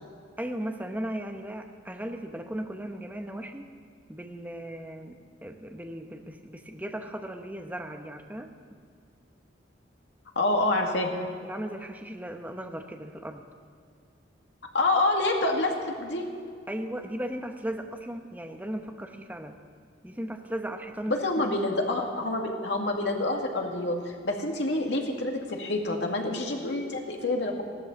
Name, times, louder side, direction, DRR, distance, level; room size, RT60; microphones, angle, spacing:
voice 1, 0.4-3.7 4.1-8.5 11.4-13.5 16.7-19.6 20.0-21.6, right 1 dB, 10° right, 4 dB, 0.9 m, -37 dB
voice 2, 10.4-11.1 14.7-16.2 21.1-27.6, left 2 dB, 70° left, 1 dB, 2.2 m, -27 dB
15.5 x 13.0 x 7.2 m, 2.3 s
head